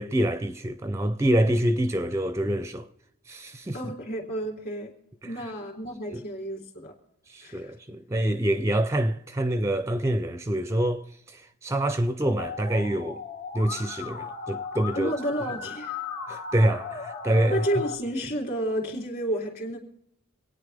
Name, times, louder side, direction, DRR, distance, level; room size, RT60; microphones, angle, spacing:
voice 1, 0.0-2.9 3.3-3.8 6.1-6.2 7.3-13.2 13.5-15.1 16.3-17.6, right 1 dB, 15° right, 0.4 m, -26 dB
voice 2, 3.7-4.9 5.2-6.9 7.4-7.7 14.9-16.0 17.5-19.8, right 1 dB, 45° left, 3.3 m, -31 dB
Musical instrument, 12.4-17.9, left 5 dB, 75° left, 2.9 m, -37 dB
26.0 x 9.4 x 3.4 m
head